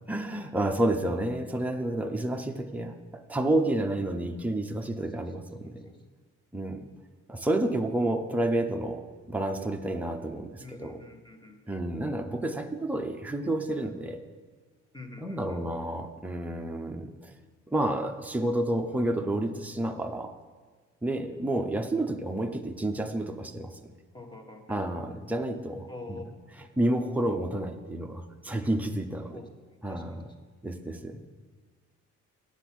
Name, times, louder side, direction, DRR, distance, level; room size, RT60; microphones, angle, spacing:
voice 1, 0.1-5.9 6.5-6.8 7.3-11.0 11.7-14.2 15.2-17.3 17.7-20.3 21.0-23.8 24.7-29.4 29.8-30.3 30.6-31.2, right 1 dB, 5° right, 4 dB, 0.7 m, -30 dB
voice 2, 5.0-5.3 5.6-6.0 10.6-11.8 14.9-15.6 24.1-24.8 25.9-26.2 29.3-29.5 29.9-30.2, left 3 dB, 15° left, 3 dB, 1.5 m, -46 dB
9.8 x 7.2 x 6.0 m, 1.5 s
cardioid pair, 90°, 30 cm